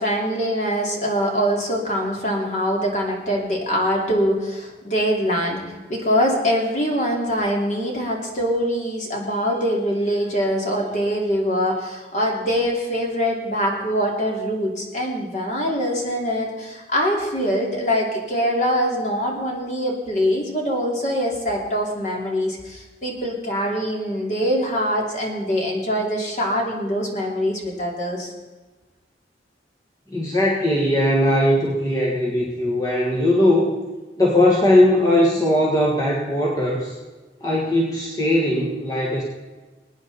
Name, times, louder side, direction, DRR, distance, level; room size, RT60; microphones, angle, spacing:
voice 1, 0.0-28.3, equal, 40° left, -1 dB, 2.8 m, -23 dB
voice 2, 30.1-33.7 34.2-36.9 37.4-39.2, left 1 dB, 20° left, -3 dB, 1.7 m, -19 dB
21.5 x 9.6 x 4.2 m, 1.3 s
head